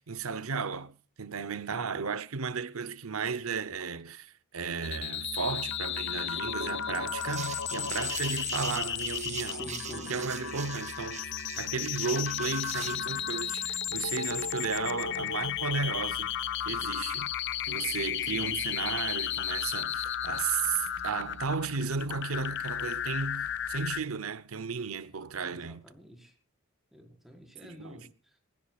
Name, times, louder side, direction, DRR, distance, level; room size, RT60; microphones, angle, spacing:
voice 1, 0.0-11.3 11.6-16.3 16.6-17.3 17.6-25.8 27.6-28.1, right 5 dB, 90° right, 0.9 m, -34 dB
sound 1, 4.8-24.0, left 9 dB, 60° left, 0.9 m, -34 dB
sound 2, 7.2-13.1, right 8 dB, 35° right, 1.7 m, -42 dB
voice 2, 9.4-10.1 18.2-18.8 25.5-26.4 26.9-28.4, equal, ahead, 5.1 m, -48 dB
27.5 x 16.0 x 2.4 m
head